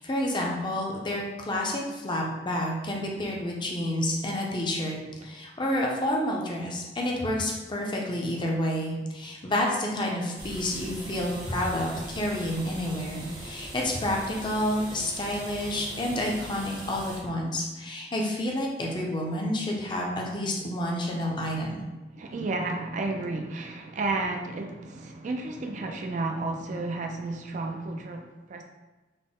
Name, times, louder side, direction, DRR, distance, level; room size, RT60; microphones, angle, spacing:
voice 1, 0.0-21.8, left 1 dB, 25° left, -1 dB, 0.5 m, -29 dB
sound 1, 10.4-17.2, right 1 dB, 25° right, 0.7 m, -41 dB
voice 2, 22.1-28.6, right 2 dB, 45° right, 3 dB, 0.3 m, -32 dB
4.0 x 2.1 x 3.6 m, 1.1 s
head